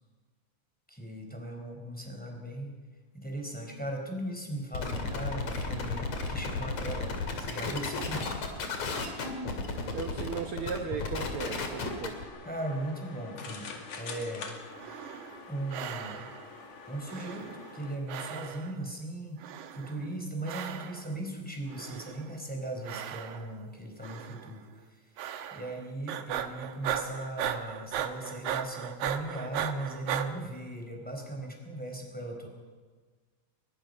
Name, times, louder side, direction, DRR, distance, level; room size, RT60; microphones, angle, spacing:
voice 1, 0.9-2.7 3.1-8.3 12.4-14.5 15.5-16.2 16.9-25.0 25.5-32.5, right 1 dB, 5° left, 1 dB, 4.2 m, -38 dB
sound 1, 4.7-12.2, left 3 dB, 65° left, 3.6 m, -34 dB
voice 2, 9.9-12.1, right 6 dB, 60° right, 6 dB, 1.5 m, -36 dB
sound 2, 11.6-18.0, left 4 dB, 80° left, 3.8 m, -46 dB
sound 3, 14.7-15.4 15.7-16.5 17.1-17.8 18.1-18.8 19.4-20.0 20.4-21.1 21.7-22.3 22.8-23.6 24.0-24.5 25.2-25.8 26.1-30.3, right 10 dB, 80° right, 2.5 m, -37 dB
22.0 x 21.5 x 5.5 m, 1.5 s
omnidirectional pair, 3.5 m